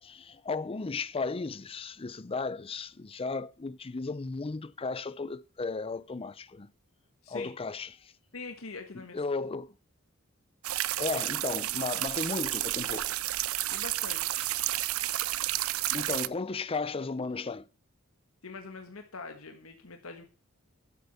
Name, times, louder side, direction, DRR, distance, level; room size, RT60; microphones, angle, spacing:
voice 1, 0.0-6.7 7.3-8.1 9.1-9.7 11.0-13.2 14.4-14.5 15.9-17.7, left 4 dB, 25° left, 0.5 m, -35 dB
voice 2, 7.2-7.6 8.3-9.1 13.7-14.4 18.4-20.2, left 4 dB, 80° left, 1.5 m, -43 dB
sound 1, 10.6-16.3, right 15 dB, 85° right, 0.5 m, -31 dB
12.0 x 8.4 x 5.6 m
head